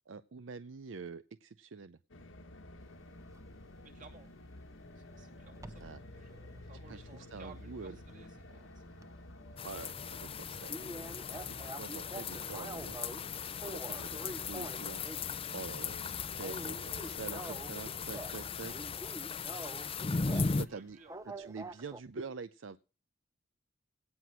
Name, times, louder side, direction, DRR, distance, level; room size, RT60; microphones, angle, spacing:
voice 1, 0.1-2.0 5.8-6.0 6.9-8.0 9.6-13.0 13.7-15.0 15.5-16.1 16.3-19.5 20.0-21.0 21.2-22.8, right 4 dB, 75° right, 14 dB, 0.6 m, -46 dB
sound 1, 2.1-19.0, left 1 dB, 85° left, 1.7 m, -51 dB
sound 2, 3.3-3.5 5.6-6.0 6.5-8.6 8.9-9.1 9.4-9.5 9.8-9.9 10.1-10.2 10.7-13.2 13.6-15.3 15.7-16.0 16.3-18.4 18.7-20.6 21.1-22.0, right 2 dB, 15° right, 0.7 m, -46 dB
voice 2, 3.8-4.3 5.0-8.8 13.8-14.1 20.2-21.2 21.8-21.9, right 3 dB, 40° right, 3 dB, 2.6 m, -57 dB
sound 3, 9.6-20.7, left 5 dB, 30° left, 0.5 m, -38 dB
17.5 x 6.0 x 6.1 m, 0.34 s
head